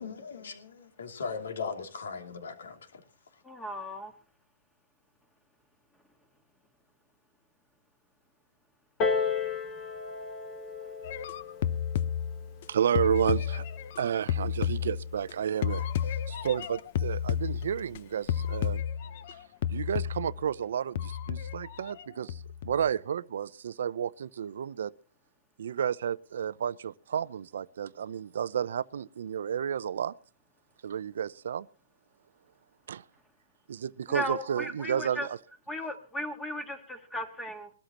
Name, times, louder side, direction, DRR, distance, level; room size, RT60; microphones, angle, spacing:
voice 1, 0.0-3.0, left 5 dB, 75° left, 2.9 m, -38 dB
voice 2, 3.4-4.1 34.1-35.3 35.7-37.7, equal, 5° left, 1.7 m, -36 dB
Piano, 9.0-14.2 15.0-15.1, left 5 dB, 25° left, 2.3 m, -35 dB
sound 1, 11.0-12.6 13.0-15.3 15.6-18.0 18.3-19.4 19.6-20.4 21.0-22.0 22.3-22.8, left 9 dB, 45° left, 0.7 m, -32 dB
voice 3, 12.7-13.6 14.0-15.9 16.3-18.8 19.7-24.9 25.6-30.1 30.8-31.7 32.9-33.0 33.7-35.4, right 8 dB, 65° right, 0.6 m, -31 dB
22.0 x 13.0 x 3.0 m
hypercardioid pair, 160°, 0 cm